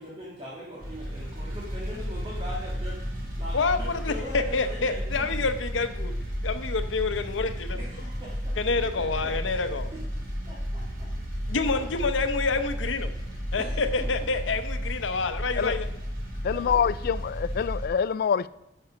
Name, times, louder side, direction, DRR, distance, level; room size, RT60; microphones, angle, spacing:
voice 1, 0.0-5.4 7.8-8.6 9.0-9.3 9.9-10.0 10.5-11.9 13.6-14.1 15.5-15.7 16.5-16.7, equal, 30° right, 1.8 m, -41 dB
sound 1, 0.8-17.9, equal, 55° right, 2.7 m, -33 dB
voice 2, 3.5-6.1 6.4-7.8 8.6-9.9 11.5-13.1 13.5-15.9, left 4 dB, 85° left, 0.8 m, -27 dB
voice 3, 16.4-18.5, left 7 dB, 55° left, 0.3 m, -26 dB
10.5 x 5.6 x 5.1 m
head